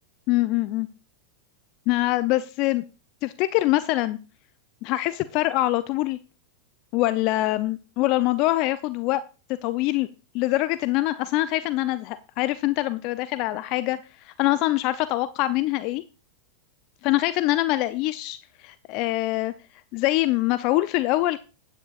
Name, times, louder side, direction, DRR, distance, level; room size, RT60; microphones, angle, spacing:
voice 1, 0.3-0.9 1.9-2.8 3.2-4.2 4.8-6.2 6.9-9.2 9.6-10.1 10.3-14.0 14.2-16.0 17.0-19.5 19.9-21.4, left 17 dB, 50° left, 14 dB, 0.5 m, -24 dB
15.0 x 9.6 x 2.5 m, 0.32 s
hypercardioid pair, 105°, 0 cm